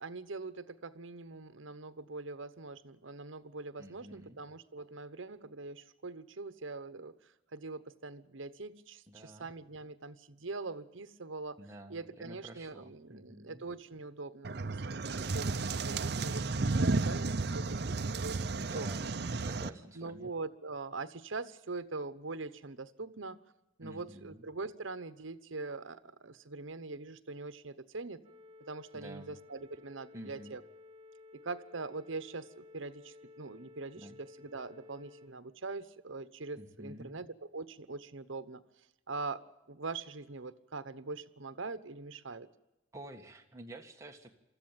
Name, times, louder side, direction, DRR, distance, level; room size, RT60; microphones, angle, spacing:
voice 1, 0.0-7.2 7.5-11.6 11.9-16.4 16.8-17.3 17.5-18.0 18.2-18.9 19.9-23.4 23.8-28.2 28.7-30.6 31.3-38.6 39.1-42.5, right 3 dB, 75° right, 12 dB, 1.0 m, -43 dB
voice 2, 3.8-4.4 9.1-9.5 11.6-13.6 18.6-19.1 19.4-20.3 23.8-24.4 28.9-29.4 30.1-30.6 34.0-34.2 36.6-37.3 42.9-44.3, right 1 dB, 15° right, 3 dB, 1.6 m, -50 dB
sound 1, 14.4-19.7, right 3 dB, 55° right, 0.7 m, -33 dB
sound 2, 28.2-35.3, left 3 dB, 30° right, 3.1 m, -55 dB
24.0 x 14.0 x 9.0 m, 0.99 s
head